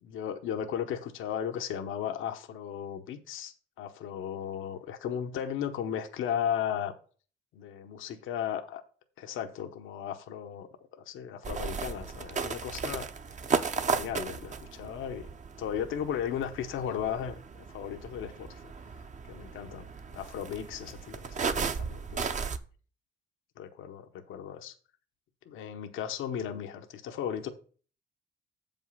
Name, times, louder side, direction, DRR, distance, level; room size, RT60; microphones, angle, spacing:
voice 1, 0.0-6.9 7.5-8.8 9.2-10.7 11.0-13.0 13.8-15.3 15.6-18.6 19.3-22.3 23.6-24.7 25.5-27.5, left 9 dB, 85° left, 7 dB, 0.9 m, -35 dB
sound 1, 11.4-22.6, right 5 dB, 40° right, 0.7 m, -35 dB
7.4 x 5.4 x 5.5 m, 0.40 s
cardioid pair, 90°, 20 cm